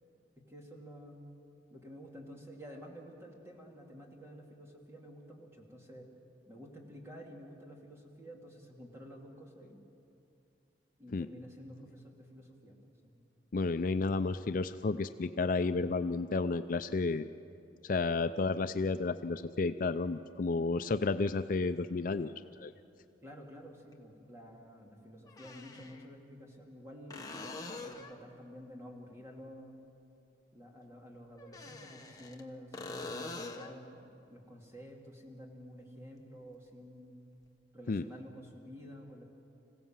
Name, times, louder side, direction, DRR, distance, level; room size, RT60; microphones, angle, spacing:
voice 1, 0.4-1.3 1.7-6.1 6.5-9.8 11.0-13.2 23.2-29.8 30.5-37.2 37.7-39.2, equal, 15° right, -1 dB, 2.6 m, -50 dB
voice 2, 13.5-17.2 17.8-22.3 22.6-22.7 37.9-38.0, left 3 dB, 45° left, 10 dB, 0.4 m, -31 dB
sound 1, 21.8-21.9 23.9-24.0 25.3-26.0 27.1-28.2 31.4-32.4 32.7-33.8 37.4-37.5, left 3 dB, 20° left, 1.1 m, -44 dB
26.0 x 16.5 x 7.4 m, 2.6 s
head